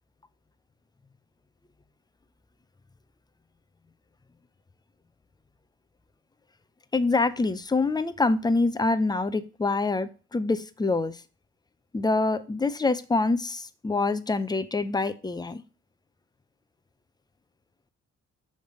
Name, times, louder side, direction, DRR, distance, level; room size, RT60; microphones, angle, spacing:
voice 1, 6.9-11.1 11.9-15.6, left 3 dB, 15° left, 12 dB, 0.5 m, -25 dB
6.4 x 3.4 x 5.2 m, 0.34 s
cardioid pair, 90°, 30 cm